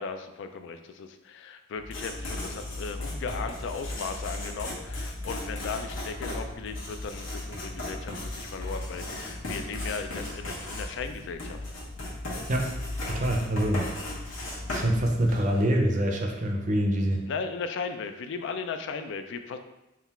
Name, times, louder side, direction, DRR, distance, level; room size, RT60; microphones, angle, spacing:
voice 1, 0.0-11.6 17.3-19.6, left 5 dB, 65° left, 8 dB, 0.3 m, -36 dB
Writing, 1.8-15.6, left 1 dB, 85° left, 1.2 m, -36 dB
voice 2, 13.1-13.9 14.7-17.2, right 1 dB, 40° right, 2 dB, 0.5 m, -25 dB
3.7 x 2.3 x 4.2 m, 0.94 s
head